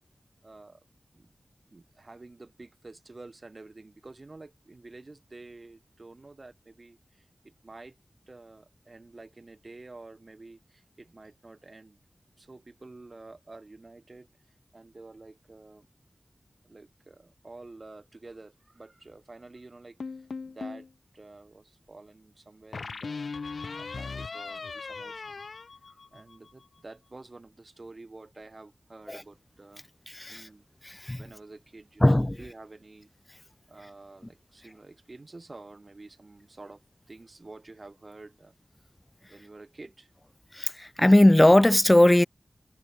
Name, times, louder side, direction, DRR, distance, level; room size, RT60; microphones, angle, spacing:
voice 1, 0.4-0.8 1.1-1.3 1.7-8.0 8.3-12.0 12.4-14.3 14.7-15.9 16.6-20.9 21.1-23.3 23.7-25.4 25.9-29.8 30.3-30.7 31.2-33.1 33.7-36.8 37.1-38.9 39.2-40.1, right 2 dB, 50° right, 4.9 m, -49 dB
sound 1, 20.0-20.9 22.7-26.5, left 4 dB, 85° left, 2.5 m, -38 dB
voice 2, 30.1-30.5 30.8-31.2 32.0-32.4 40.5-42.3, left 1 dB, 20° left, 0.7 m, -19 dB
wide cardioid pair, 55°, 0 cm